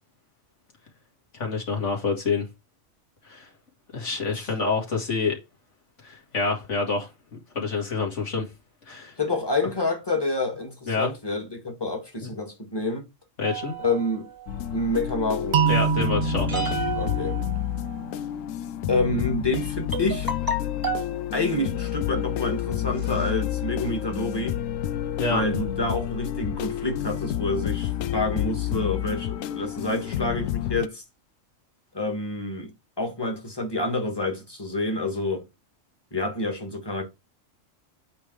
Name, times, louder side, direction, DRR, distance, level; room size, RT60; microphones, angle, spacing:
voice 1, 1.3-2.5 3.2-3.5 3.9-5.4 6.0-7.1 7.5-8.5 8.9-9.1 10.9-11.1 12.2-12.3 13.4-13.7 15.7-16.7 25.2-25.4, left 4 dB, 65° left, 2.6 m, -27 dB
voice 2, 9.2-13.0 13.8-14.3 14.7-15.6 16.9-17.4 18.9-20.3 21.3-24.6 25.3-31.0 31.9-32.7 33.0-35.4 36.1-37.0, left 2 dB, 20° left, 2.0 m, -28 dB
sound 1, 13.4-14.8 16.5-18.2 19.3-19.4 19.9-21.2 21.9-22.2 22.6-22.7 23.0-23.7, right 3 dB, 15° right, 1.4 m, -33 dB
sound 2, 14.5-30.9, left 11 dB, 85° left, 1.0 m, -30 dB
sound 3, 15.5-18.4, right 7 dB, 60° right, 0.5 m, -27 dB
8.6 x 3.5 x 4.8 m
omnidirectional pair, 1.3 m